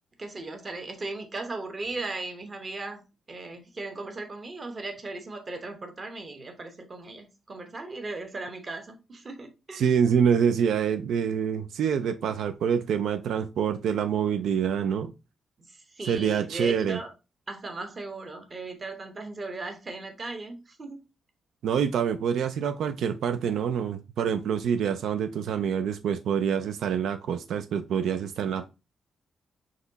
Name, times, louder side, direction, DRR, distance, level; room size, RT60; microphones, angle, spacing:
voice 1, 0.2-9.9 15.7-17.1 17.5-21.0, right 3 dB, 30° right, 0.9 m, -37 dB
voice 2, 9.7-15.1 16.0-17.0 21.6-28.7, right 7 dB, 80° right, 0.3 m, -26 dB
4.1 x 3.0 x 3.9 m
wide cardioid pair, 140°, 0 cm